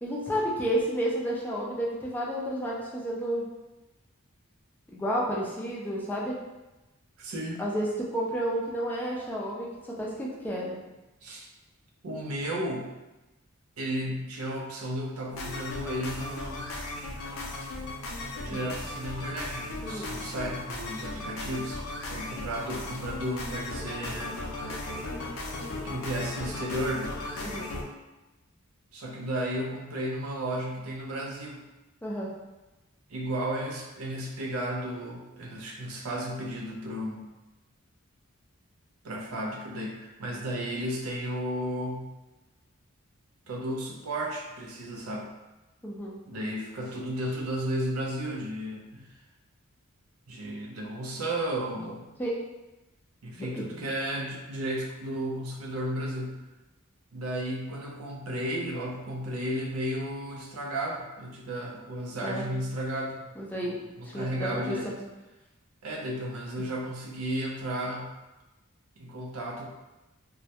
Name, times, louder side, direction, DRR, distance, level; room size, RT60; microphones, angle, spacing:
voice 1, 0.0-3.4 4.9-6.4 7.6-9.7 10.0-10.8 18.5-18.6 19.8-20.1 27.4-27.7 32.0-32.3 45.8-46.1 52.2-52.4 53.4-53.7 62.2-62.5 63.4-63.8 64.0-64.9 66.6-66.7, equal, 10° left, -5 dB, 0.3 m, -31 dB
voice 2, 7.2-7.6 11.2-11.5 12.0-12.9 13.8-16.7 18.3-21.8 22.1-24.4 25.8-27.2 28.9-31.6 33.1-37.3 39.0-42.1 43.5-45.3 46.3-49.1 50.3-52.1 53.2-56.4 57.1-63.3 63.6-64.9 65.8-68.1 69.0-69.7, right 1 dB, 85° right, 0 dB, 0.5 m, -33 dB
sound 1, 15.3-27.8, left 2 dB, 75° left, 0.5 m, -37 dB
2.2 x 2.1 x 2.7 m, 1.0 s
head